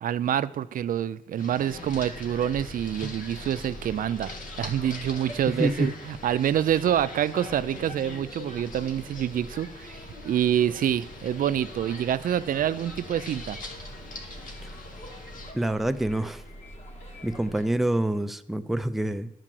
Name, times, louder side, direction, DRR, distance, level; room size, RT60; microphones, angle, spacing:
voice 1, 0.0-4.3 4.6-13.6, right 10 dB, 70° right, 0.4 m, -27 dB
sound 1, 1.4-15.5, left 2 dB, 70° left, 1.6 m, -43 dB
sound 2, 1.7-17.7, equal, 50° left, 2.1 m, -45 dB
voice 2, 5.6-5.9 14.6-14.7 15.5-16.4 17.2-19.3, right 1 dB, ahead, 0.4 m, -27 dB
11.0 x 4.8 x 7.5 m
wide cardioid pair, 140°, 15 cm